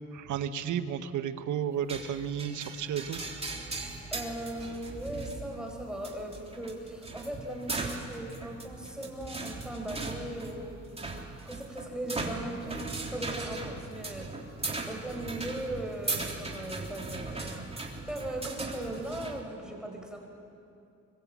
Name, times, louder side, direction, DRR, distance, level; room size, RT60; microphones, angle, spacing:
voice 1, 0.1-3.2, right 8 dB, 75° right, 9 dB, 1.4 m, -32 dB
sound 1, 1.9-19.4, right 3 dB, 20° right, 3.4 m, -39 dB
voice 2, 4.1-10.8 11.3-14.3 14.9-17.6 18.1-20.2, right 1 dB, ahead, 1 dB, 4.7 m, -38 dB
25.0 x 21.5 x 8.6 m, 2.6 s
cardioid pair, 90°, 30 cm